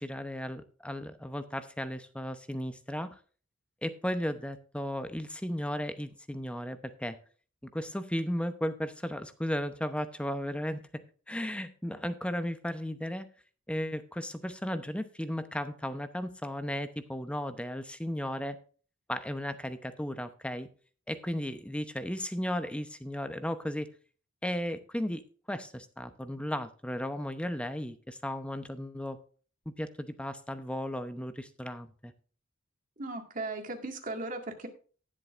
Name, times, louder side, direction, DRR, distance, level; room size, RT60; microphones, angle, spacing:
voice 1, 0.0-3.1 3.8-7.2 7.7-10.8 11.3-13.3 13.7-18.6 19.1-20.7 21.1-23.9 24.4-25.2 25.5-29.2 29.7-32.1, equal, 5° left, 10 dB, 0.8 m, -35 dB
voice 2, 33.0-34.7, right 2 dB, 45° right, 4 dB, 2.0 m, -37 dB
18.5 x 7.6 x 2.6 m, 0.39 s
head